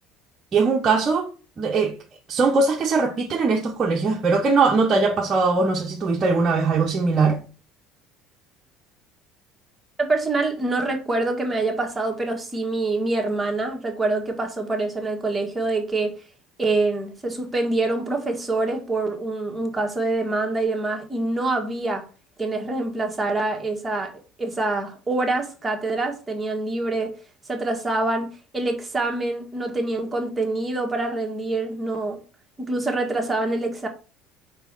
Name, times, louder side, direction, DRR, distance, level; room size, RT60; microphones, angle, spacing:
voice 1, 0.5-1.3 1.6-1.9 2.3-7.4, right 4 dB, 35° right, 1.1 m, -20 dB
voice 2, 10.0-16.1 16.6-22.0 22.4-27.1 27.5-32.2 32.6-33.9, right 2 dB, 15° right, 1.8 m, -25 dB
4.5 x 4.1 x 5.3 m
supercardioid pair, 85°, 0 cm